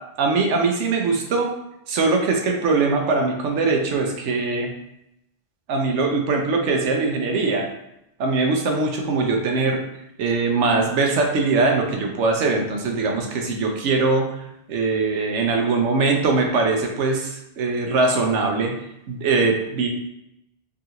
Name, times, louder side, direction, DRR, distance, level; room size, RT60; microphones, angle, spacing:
voice 1, 0.2-1.5 1.9-4.7 5.7-7.7 8.2-9.8 10.2-14.2 14.7-18.7 19.1-19.9, right 3 dB, 75° right, 2 dB, 0.9 m, -21 dB
3.6 x 2.4 x 2.8 m, 0.85 s
omnidirectional pair, 1.2 m